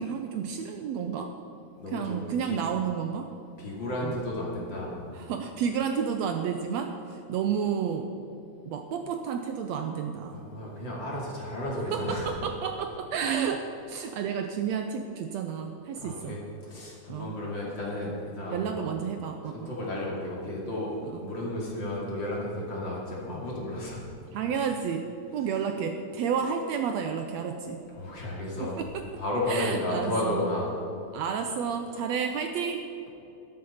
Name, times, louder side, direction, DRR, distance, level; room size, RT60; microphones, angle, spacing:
voice 1, 0.0-1.3 1.9-3.3 4.0-4.2 5.1-8.2 8.7-10.4 11.9-16.4 17.1-17.3 18.5-19.7 21.1-21.3 24.3-25.1 25.3-27.8 28.6-29.2 29.5-30.4 31.1-32.8, right 7 dB, 75° right, 6 dB, 1.7 m, -31 dB
voice 2, 1.8-2.6 3.6-4.9 10.3-12.3 16.0-18.9 19.4-20.9 21.2-24.0 27.9-28.8 29.2-30.7, left 1 dB, 40° left, -4 dB, 3.1 m, -33 dB
12.5 x 11.5 x 5.6 m, 2.9 s
omnidirectional pair, 3.4 m